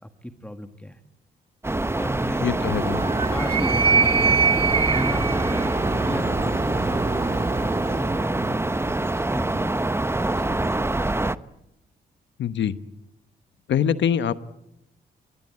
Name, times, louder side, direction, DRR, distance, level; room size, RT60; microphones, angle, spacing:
voice 1, 0.0-1.0 1.9-2.6 3.3-4.4 4.8-10.9, equal, 5° left, 7 dB, 1.8 m, -35 dB
sound 1, 1.6-11.4, right 2 dB, 10° right, 0.9 m, -26 dB
voice 2, 2.4-3.0 12.4-12.8 13.7-14.3, left 9 dB, 70° left, 13 dB, 1.1 m, -23 dB
Animal, 2.5-8.4, right 4 dB, 30° right, 1.9 m, -24 dB
22.5 x 20.0 x 8.7 m, 0.85 s
supercardioid pair, 55°, 20 cm